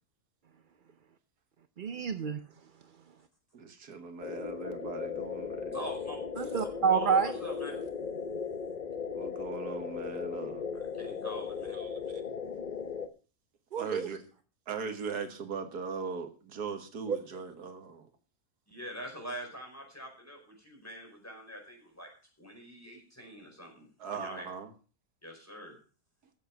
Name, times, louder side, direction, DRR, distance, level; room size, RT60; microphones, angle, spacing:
voice 1, 1.8-2.4 6.4-7.3 13.7-14.1 17.1-17.2, right 6 dB, 50° right, 0.6 m, -28 dB
voice 2, 3.5-5.8 9.1-10.6 11.7-12.2 13.8-14.2 14.7-18.1 24.0-24.7, right 5 dB, 85° right, 2.0 m, -40 dB
sound 1, 4.2-13.1, left 6 dB, 35° left, 0.8 m, -37 dB
voice 3, 5.7-6.2 6.9-7.8 11.0-11.8 18.7-22.1 22.4-23.9 24.1-24.5 25.2-25.8, equal, 10° left, 4.8 m, -44 dB
13.0 x 7.9 x 5.8 m
omnidirectional pair, 1.6 m